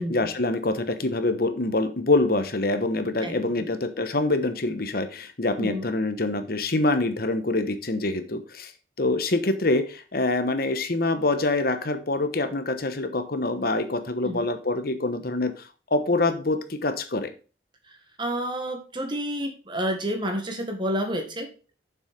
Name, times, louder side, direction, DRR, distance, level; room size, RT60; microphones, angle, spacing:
voice 1, 0.0-8.7 9.0-17.3, left 2 dB, 55° left, 1.1 m, -25 dB
voice 2, 3.2-3.6 5.6-5.9 14.2-14.5 17.9-21.5, equal, 25° right, 1.7 m, -30 dB
7.2 x 6.3 x 5.2 m
head